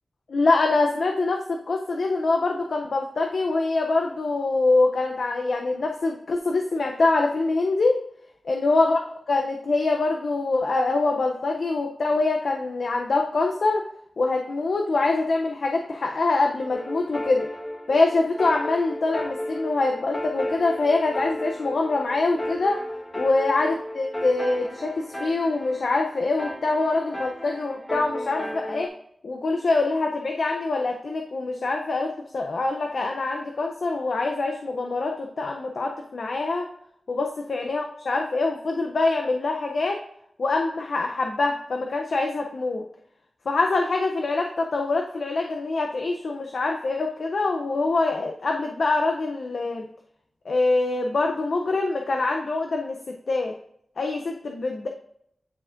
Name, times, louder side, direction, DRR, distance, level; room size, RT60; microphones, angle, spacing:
voice 1, 0.3-8.0 8.5-9.0 9.3-13.8 14.2-17.5 17.9-22.9 23.1-28.9 29.2-36.7 37.1-40.0 40.4-42.8 43.5-49.9 50.5-53.6 54.0-54.9, left 3 dB, 75° left, 2 dB, 0.5 m, -24 dB
sound 1, 16.7-28.9, equal, 30° left, 1.4 m, -34 dB
10.0 x 4.3 x 2.5 m, 0.70 s
cardioid pair, 55°, 0 cm